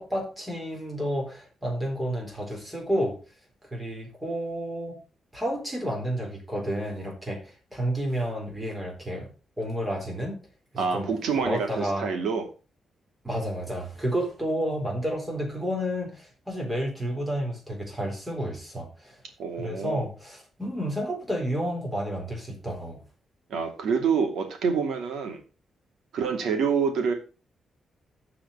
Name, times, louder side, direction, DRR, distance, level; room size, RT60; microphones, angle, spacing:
voice 1, 0.0-3.2 3.7-5.0 5.3-9.3 9.6-10.4 10.7-11.1 11.4-12.1 13.2-19.1 19.6-23.0, equal, 10° right, 4.0 m, -30 dB
voice 2, 10.8-12.5 19.4-20.0 23.5-25.4 26.1-27.1, right 6 dB, 80° right, 2.6 m, -27 dB
14.0 x 5.0 x 5.6 m
wide cardioid pair, 145°, 0 cm